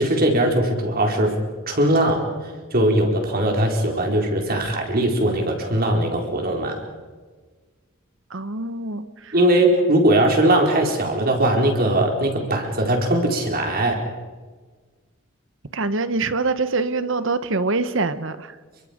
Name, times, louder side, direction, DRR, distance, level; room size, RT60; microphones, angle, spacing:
voice 1, 0.0-1.4 1.7-2.3 2.7-6.8 9.3-14.0, right 1 dB, 45° right, 2 dB, 4.5 m, -20 dB
voice 2, 8.3-9.3 15.7-18.6, right 3 dB, 65° right, 12 dB, 1.2 m, -24 dB
29.0 x 24.0 x 5.3 m, 1.4 s
head